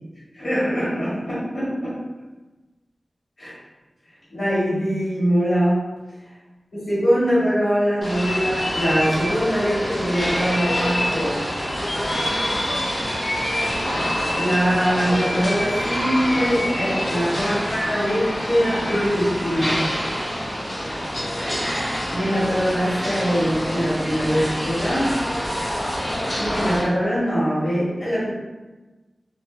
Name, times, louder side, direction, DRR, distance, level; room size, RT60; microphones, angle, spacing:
voice 1, 0.3-2.0 3.4-3.5 4.3-5.8 6.7-11.4 14.3-19.9 22.1-25.2 26.4-28.3, equal, 65° left, -12 dB, 1.4 m, -22 dB
sound 1, 8.0-26.8, equal, 30° left, 1.4 m, -27 dB
sound 2, 8.1-19.3, left 1 dB, 85° left, 0.6 m, -30 dB
3.2 x 2.5 x 2.4 m, 1.2 s
wide cardioid pair, 55°, 0 cm